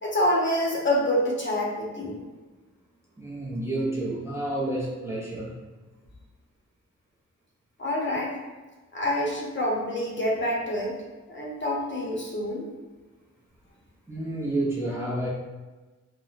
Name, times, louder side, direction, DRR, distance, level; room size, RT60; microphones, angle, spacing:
voice 1, 0.0-2.3 7.8-8.4 8.9-10.9 11.3-12.7, left 1 dB, 40° left, -3 dB, 0.7 m, -27 dB
voice 2, 3.2-5.6 14.1-15.3, right 1 dB, 10° right, -6 dB, 0.5 m, -29 dB
2.9 x 2.0 x 2.4 m, 1.2 s
cardioid pair, 75°, 30 cm